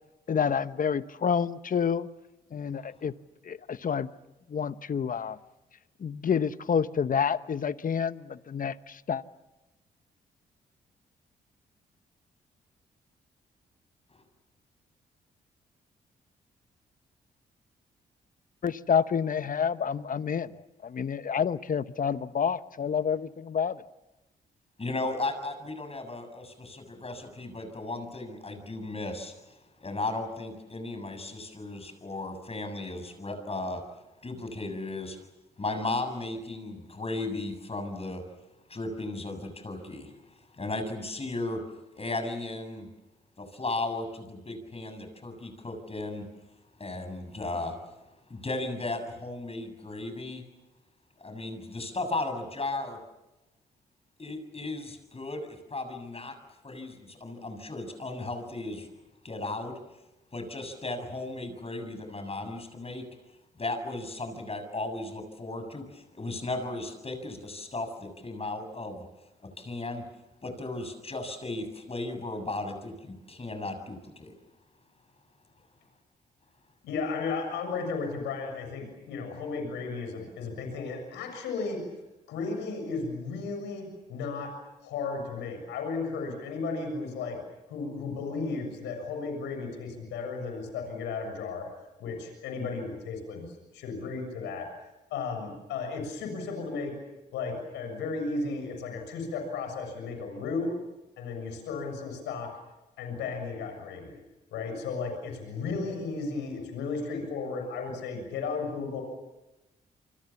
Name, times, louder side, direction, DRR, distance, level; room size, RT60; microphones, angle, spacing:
voice 1, 0.3-2.1 2.5-3.1 3.5-4.1 4.5-5.4 6.0-9.2 18.6-20.5 20.8-23.8, left 7 dB, 50° left, 13 dB, 1.1 m, -28 dB
voice 2, 24.8-33.9 34.2-35.2 35.6-38.3 38.7-41.7 42.0-42.9 43.4-46.3 46.8-47.9 48.3-50.4 51.2-53.0 54.2-58.9 59.2-59.8 60.3-63.1 63.6-69.0 69.4-70.1 70.4-74.3, left 2 dB, 35° left, 8 dB, 7.3 m, -35 dB
voice 3, 76.8-81.8 82.3-84.5 84.8-87.4 87.7-91.7 92.0-93.4 93.7-94.7 95.1-96.9 97.3-100.8 101.2-102.5 103.0-104.2 104.5-109.0, left 4 dB, 90° left, 5 dB, 7.1 m, -34 dB
28.5 x 25.0 x 7.3 m, 0.99 s
supercardioid pair, 50°, 18 cm